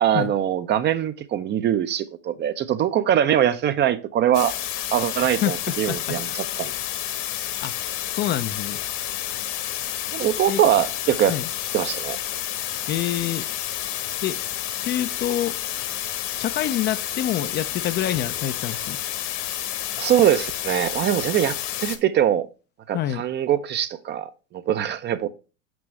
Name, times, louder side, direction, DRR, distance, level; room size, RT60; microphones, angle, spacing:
voice 1, 0.0-4.5 4.9-6.7 10.1-11.3 11.7-12.2 20.0-22.5 22.9-24.3 24.5-25.3, right 10 dB, 30° right, 0.5 m, -22 dB
sound 1, 4.3-22.0, left 12 dB, 50° left, 1.2 m, -30 dB
voice 2, 5.4-6.3 7.6-7.7 8.1-8.8 10.5-10.6 11.3-11.5 12.9-13.5 14.2-14.4 14.8-15.6 16.4-19.0 22.9-23.2, left 11 dB, 30° left, 0.4 m, -27 dB
6.2 x 6.1 x 3.2 m
hypercardioid pair, 90°, 38 cm